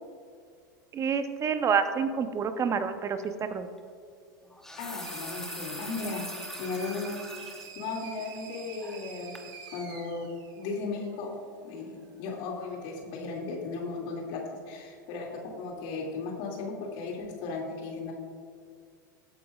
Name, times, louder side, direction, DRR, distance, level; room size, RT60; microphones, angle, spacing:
voice 1, 0.9-3.7, right 6 dB, 30° right, 9 dB, 0.9 m, -28 dB
sound 1, 3.2-3.4 4.4-7.7 8.2-8.3 8.8-9.1 9.4-9.5, left 1 dB, 5° left, 1.1 m, -42 dB
voice 2, 4.8-6.2 6.6-7.2 7.7-9.3 9.7-10.3 10.6-11.3 11.6-18.1, left 4 dB, 50° left, -1 dB, 2.5 m, -36 dB
sound 2, 5.0-11.4, right 7 dB, 45° right, 1.8 m, -47 dB
17.5 x 8.5 x 2.4 m, 2.1 s
hypercardioid pair, 90°, 11 cm